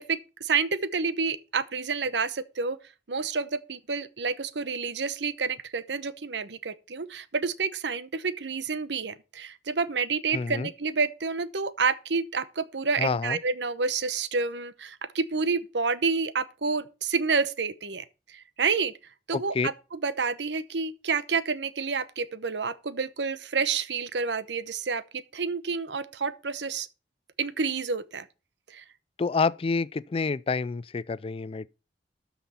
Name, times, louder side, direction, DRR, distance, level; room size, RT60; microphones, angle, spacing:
voice 1, 0.0-2.8 3.1-18.9 19.3-26.9 27.4-28.2 28.7-28.8, right 4 dB, 80° right, 0.9 m, -29 dB
voice 2, 10.3-10.7 13.0-13.4 19.3-19.7 29.2-31.7, left 4 dB, 35° left, 0.4 m, -28 dB
12.5 x 5.8 x 4.3 m
head